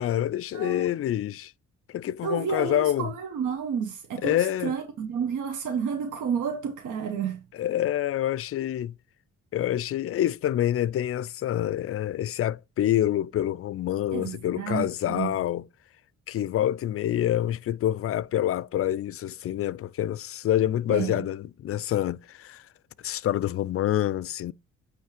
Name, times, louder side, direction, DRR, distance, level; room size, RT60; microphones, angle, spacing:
voice 1, 0.0-1.5 1.9-3.1 4.2-4.8 7.5-8.9 9.5-15.7 16.3-22.7 23.0-24.5, left 12 dB, 50° left, 0.4 m, -27 dB
voice 2, 0.5-0.9 2.2-7.4 14.1-15.3 20.9-21.1, right 7 dB, 80° right, 1.2 m, -31 dB
9.1 x 3.2 x 4.9 m
cardioid pair, 90°, 30 cm